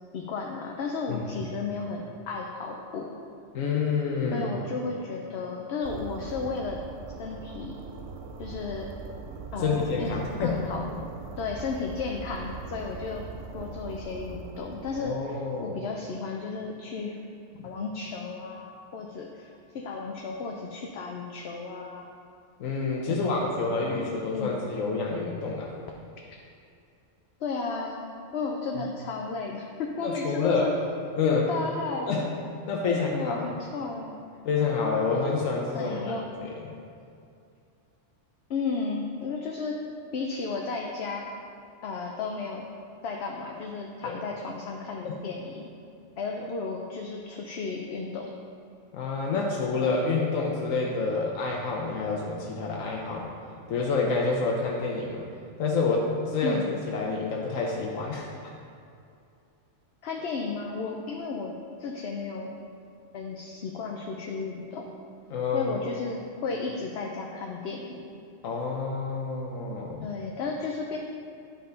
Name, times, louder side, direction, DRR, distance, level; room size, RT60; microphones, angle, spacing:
voice 1, 0.1-3.2 4.3-6.8 7.2-7.8 8.4-8.9 9.5-11.0 11.4-13.3 13.5-17.2 17.6-19.5 19.7-22.1 23.1-23.6 24.3-24.5 27.4-28.0 28.3-30.7 31.2-32.3 32.9-34.1 35.7-36.3 38.5-39.8 40.1-41.3 41.8-42.6 43.0-45.7 46.2-48.3 56.4-56.7 60.0-61.5 61.8-62.6 63.1-64.9 65.5-68.0 70.0-71.0, left 4 dB, 60° left, 1 dB, 0.8 m, -33 dB
voice 2, 3.5-4.5 9.6-10.6 15.0-15.8 17.6-17.7 22.6-25.7 30.0-30.7 31.1-31.5 32.1-32.3 32.7-33.5 34.4-36.2 36.5-36.6 44.0-44.2 45.0-45.1 48.9-53.3 53.7-55.3 55.6-58.3 65.3-65.8 68.4-70.1, left 4 dB, 90° left, -2 dB, 1.2 m, -28 dB
sound 1, 5.8-15.0, right 4 dB, 85° right, 1.0 m, -41 dB
10.0 x 5.5 x 3.9 m, 2.5 s
omnidirectional pair, 1.3 m